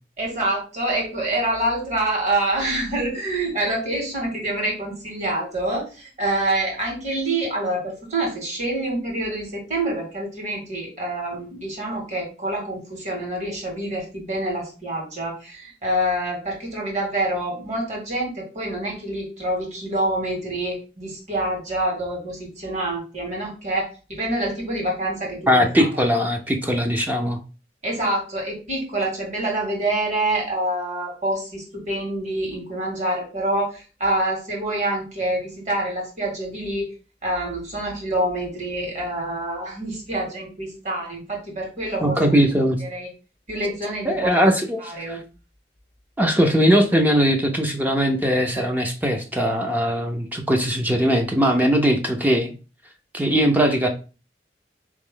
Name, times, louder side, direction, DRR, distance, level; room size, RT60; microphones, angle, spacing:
voice 1, 0.2-25.9 27.8-36.9 37.2-42.4 42.8-43.1 43.5-44.3 44.8-45.2, right 1 dB, 45° right, -1 dB, 1.9 m, -26 dB
voice 2, 25.5-27.4 42.0-42.8 44.0-45.2 46.2-52.5 53.1-53.9, equal, 10° right, 4 dB, 0.5 m, -20 dB
4.0 x 3.1 x 3.7 m, 0.33 s
head